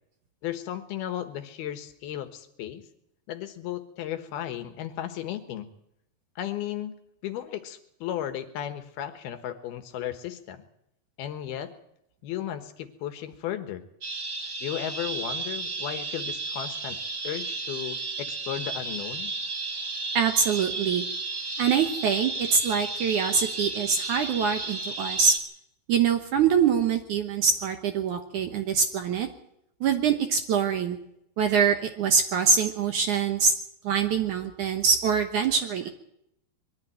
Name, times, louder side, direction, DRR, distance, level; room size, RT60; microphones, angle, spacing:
voice 1, 0.4-2.8 3.3-5.7 6.4-10.6 11.2-11.7 12.2-13.8 14.6-17.0 17.2-19.3, left 11 dB, 70° left, 9 dB, 3.2 m, -35 dB
sound 1, 14.0-25.4, right 3 dB, 25° right, 2.9 m, -33 dB
voice 2, 20.1-21.1 21.6-25.4 25.9-29.3 29.8-31.0 31.4-33.5 33.8-35.9, right 6 dB, 65° right, 7 dB, 2.2 m, -24 dB
22.0 x 13.0 x 9.5 m, 0.78 s
omnidirectional pair, 4.7 m